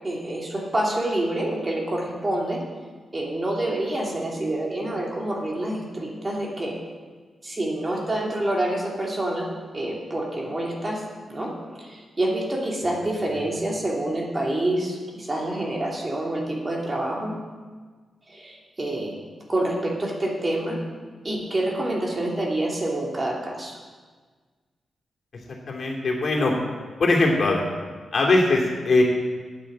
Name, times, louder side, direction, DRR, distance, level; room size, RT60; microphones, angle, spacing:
voice 1, 0.0-2.6 3.1-6.8 7.4-9.5 9.7-11.0 11.3-11.5 11.8-17.4 18.3-19.2 19.5-20.8 21.2-23.8, right 1 dB, 30° right, -2 dB, 3.0 m, -27 dB
voice 2, 25.7-26.6 27.0-27.6 28.1-29.0, left 2 dB, 55° left, -1 dB, 2.8 m, -21 dB
9.2 x 9.0 x 7.8 m, 1.5 s
cardioid pair, 75°, 0 cm